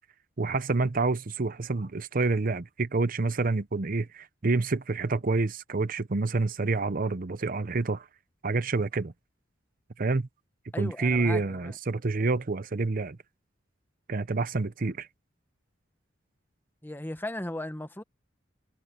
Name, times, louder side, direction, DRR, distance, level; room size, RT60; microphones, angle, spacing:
voice 1, 0.4-8.1 8.4-9.1 10.0-10.3 10.8-13.2 14.1-15.1, right 3 dB, 45° right, 0.7 m, -28 dB
voice 2, 10.7-11.8 16.8-18.0, left 1 dB, 10° left, 1.1 m, -36 dB
head